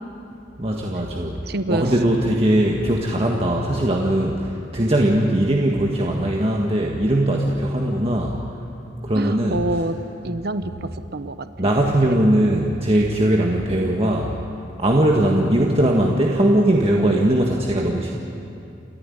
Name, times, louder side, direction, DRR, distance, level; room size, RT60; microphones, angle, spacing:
voice 1, 0.6-1.4 1.7-8.4 9.0-9.6 11.6-14.3 14.8-18.1, right 1 dB, 30° right, -1 dB, 1.6 m, -20 dB
voice 2, 1.5-1.9 9.1-10.0 10.2-11.4 11.8-12.2, right 2 dB, 55° right, 11 dB, 1.0 m, -27 dB
29.5 x 14.0 x 9.8 m, 2.7 s
head